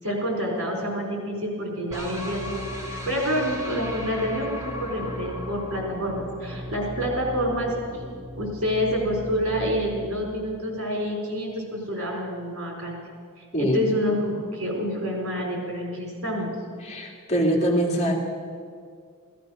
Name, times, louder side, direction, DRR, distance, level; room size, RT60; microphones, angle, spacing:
voice 1, 0.0-7.7 8.3-13.0 13.6-16.5, equal, 80° right, 0 dB, 4.6 m, -28 dB
sound 1, 1.9-11.0, left 1 dB, 15° right, 1.6 m, -37 dB
voice 2, 16.8-18.1, equal, 30° left, -1 dB, 2.4 m, -23 dB
15.5 x 14.5 x 6.4 m, 2.1 s
head